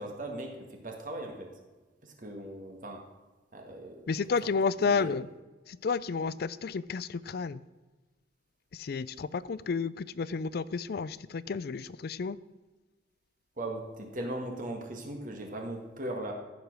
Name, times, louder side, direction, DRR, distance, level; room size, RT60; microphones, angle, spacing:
voice 1, 0.0-1.5 2.0-3.0 3.5-5.2 13.6-16.3, right 1 dB, 45° right, 2 dB, 1.6 m, -39 dB
voice 2, 4.1-5.2 5.7-7.6 8.7-12.4, left 5 dB, 55° left, 18 dB, 0.4 m, -31 dB
14.5 x 5.2 x 6.1 m, 1.2 s
head